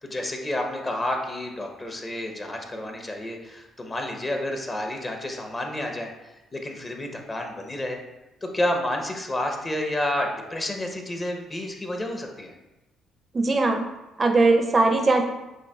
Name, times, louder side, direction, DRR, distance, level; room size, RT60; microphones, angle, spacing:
voice 1, 0.0-8.0 8.4-12.5, left 1 dB, 30° left, 3 dB, 0.8 m, -30 dB
voice 2, 13.3-13.8 14.2-15.2, right 3 dB, 35° right, 4 dB, 0.4 m, -20 dB
6.1 x 2.3 x 2.3 m, 1.0 s
hypercardioid pair, 50°, 0 cm